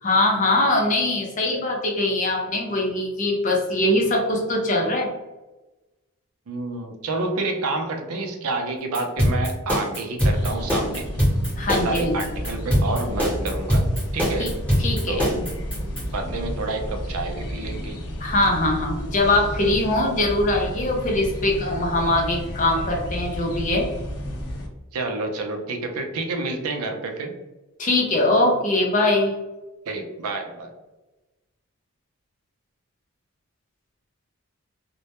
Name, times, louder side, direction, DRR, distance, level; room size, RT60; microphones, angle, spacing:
voice 1, 0.0-5.1 11.6-12.2 14.4-14.5 14.8-15.2 18.2-23.9 27.8-29.3, left 2 dB, 35° left, 0 dB, 0.5 m, -22 dB
voice 2, 6.5-11.1 11.7-13.9 14.1-14.6 15.1-15.5 16.1-18.0 24.9-27.3 29.9-30.7, right 3 dB, 80° right, 4 dB, 0.4 m, -29 dB
sound 1, 8.9-16.0, equal, 5° left, 0.8 m, -22 dB
sound 2, 10.3-24.7, equal, 85° left, 0.6 m, -32 dB
2.1 x 2.1 x 2.8 m, 1.1 s
head